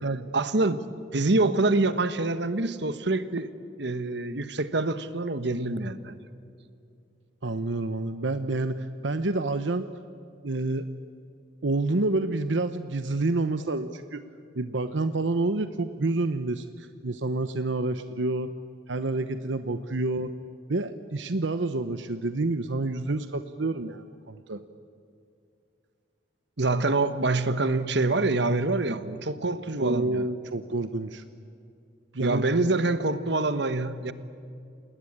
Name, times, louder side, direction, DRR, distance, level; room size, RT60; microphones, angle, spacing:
voice 1, 0.3-0.8 1.1-3.5 3.8-6.2 26.6-30.2 32.2-34.1, right 2 dB, 65° right, 13 dB, 1.3 m, -26 dB
voice 2, 7.4-9.9 10.4-10.9 11.6-14.2 14.5-18.5 18.9-20.3 20.7-24.6 29.8-31.2 32.1-32.7, right 2 dB, 85° right, 10 dB, 0.9 m, -28 dB
28.0 x 20.0 x 8.8 m, 2.5 s
head